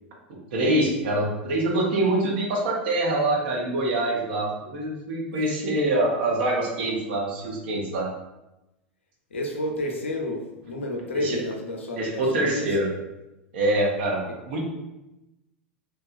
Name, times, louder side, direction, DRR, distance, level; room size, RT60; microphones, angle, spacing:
voice 1, 0.5-8.1 11.2-11.4 12.0-12.9 13.5-14.6, right 1 dB, 60° right, -2 dB, 0.7 m, -25 dB
voice 2, 9.3-12.9, left 1 dB, 75° left, 1 dB, 0.5 m, -31 dB
2.9 x 2.3 x 2.4 m, 0.97 s
figure-of-eight pair, 85°, 6 cm